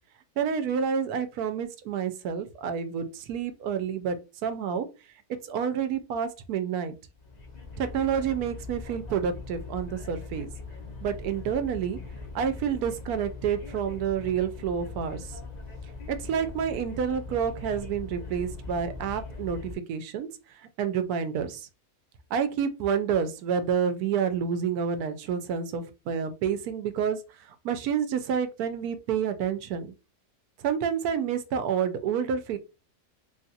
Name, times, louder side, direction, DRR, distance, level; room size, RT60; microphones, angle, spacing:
voice 1, 0.4-4.9 5.5-6.9 7.8-10.5 11.0-12.0 12.3-15.3 16.1-20.3 20.8-21.7 22.3-27.2 27.5-29.9 30.6-32.6, right 7 dB, 85° right, 1.1 m, -29 dB
sound 1, 7.1-19.7, left 3 dB, 50° left, 0.5 m, -41 dB
3.4 x 2.4 x 2.6 m
omnidirectional pair, 1.6 m